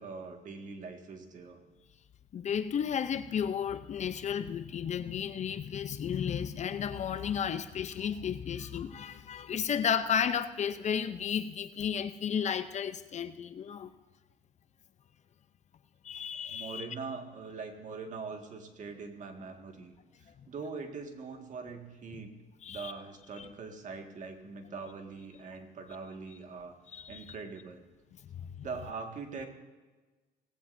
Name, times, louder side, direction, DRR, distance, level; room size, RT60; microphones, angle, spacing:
voice 1, 0.0-1.6 16.5-19.9 20.2-22.3 22.7-26.8 27.1-27.9 28.6-29.5, right 4 dB, 50° right, 4 dB, 1.9 m, -42 dB
voice 2, 2.3-13.9 16.0-16.9 20.3-20.4 22.6-22.9 23.4-23.5 26.9-27.3 28.3-28.6, left 8 dB, 45° left, 11 dB, 0.6 m, -33 dB
18.5 x 15.5 x 2.7 m, 1.2 s
cardioid pair, 110°, 17 cm